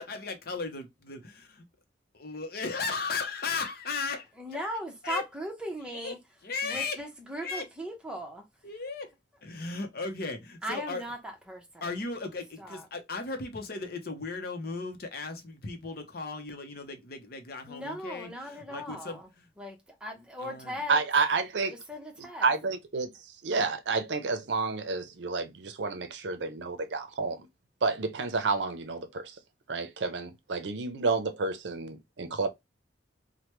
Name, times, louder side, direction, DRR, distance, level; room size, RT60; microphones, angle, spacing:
voice 1, 0.0-1.3 2.2-4.7 5.0-5.2 5.9-6.1 6.4-7.0 7.4-7.7 8.6-9.1 9.4-11.1 11.8-19.4 20.4-20.8, left 4 dB, 55° left, 0.7 m, -36 dB
voice 2, 4.4-6.2 6.6-8.4 10.6-11.9 12.6-12.9 17.7-19.3 19.6-21.0 21.7-22.5, equal, 5° right, 0.8 m, -38 dB
voice 3, 20.9-21.7 22.4-23.1 23.4-27.4 27.8-29.3 29.7-32.5, right 4 dB, 75° right, 0.6 m, -30 dB
3.2 x 2.1 x 3.0 m
head